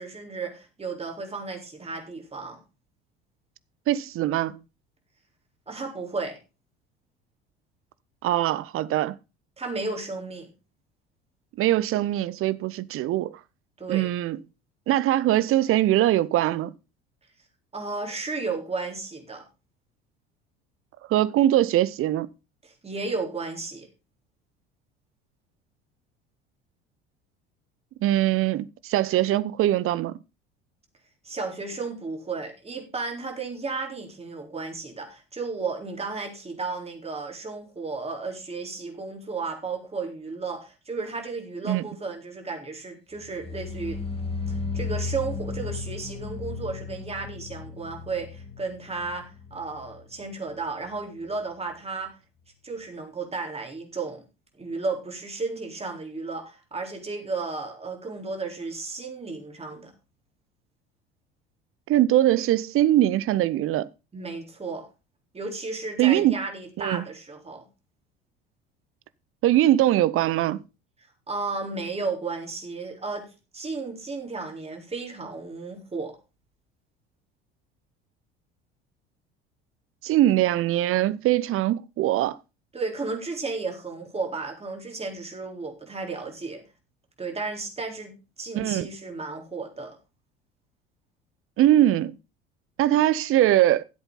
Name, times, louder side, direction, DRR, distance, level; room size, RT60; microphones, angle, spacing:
voice 1, 0.0-2.6 5.7-6.4 9.6-10.5 13.8-14.1 17.7-19.4 22.6-23.9 31.2-44.0 44.7-52.1 52.6-54.2 54.6-59.9 64.1-64.9 65.3-67.7 71.3-73.3 73.5-76.2 82.7-86.6 87.2-90.0, right 4 dB, 20° right, 4.1 m, -33 dB
voice 2, 3.9-4.6 8.2-9.2 11.6-13.4 13.9-14.4 14.9-16.7 21.1-22.3 28.0-30.2 41.7-41.9 61.9-63.9 66.0-66.4 66.8-67.1 69.4-70.6 80.0-82.4 88.5-88.9 91.6-92.1 92.8-93.8, right 13 dB, 45° right, 0.8 m, -22 dB
sound 1, 43.2-50.3 50.5-51.0 51.3-51.4, left 4 dB, 20° left, 2.5 m, -35 dB
14.5 x 8.0 x 4.0 m
figure-of-eight pair, 65°, 31 cm